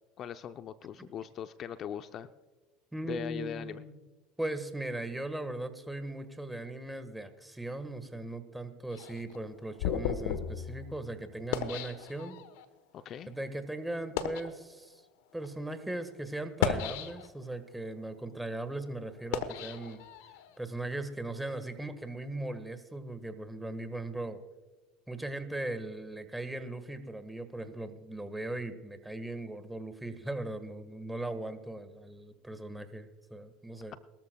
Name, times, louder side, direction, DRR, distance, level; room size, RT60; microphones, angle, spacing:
voice 1, 0.2-2.3 3.0-3.8 12.9-13.3, left 9 dB, 45° left, 11 dB, 0.5 m, -40 dB
voice 2, 2.9-3.8 4.4-12.4 13.3-15.0 15.3-20.0 20.6-24.4 25.1-34.0, right 2 dB, 5° right, 10 dB, 1.5 m, -38 dB
sound 1, 8.9-12.6 13.3-13.5 14.0-14.5 15.3-15.5 16.4-17.5 18.0-20.5, left 8 dB, 75° left, 1.1 m, -35 dB
22.5 x 13.5 x 2.3 m, 1.2 s
hypercardioid pair, 90°, 0 cm